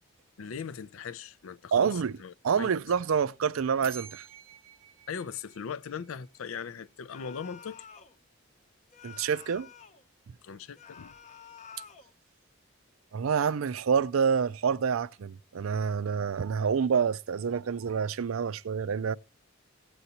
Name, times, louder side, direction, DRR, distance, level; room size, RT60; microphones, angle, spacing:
voice 1, 0.4-2.7 5.1-7.8 10.4-11.1, left 6 dB, 80° left, 0.5 m, -39 dB
voice 2, 1.7-2.1 2.4-4.2 9.0-9.7 13.1-19.1, right 6 dB, 85° right, 0.4 m, -27 dB
sound 1, 3.8-6.6, right 7 dB, 45° right, 0.7 m, -49 dB
sound 2, 7.1-8.2 8.9-10.0 10.8-12.1, left 7 dB, 35° left, 0.7 m, -50 dB
17.5 x 7.9 x 2.8 m
head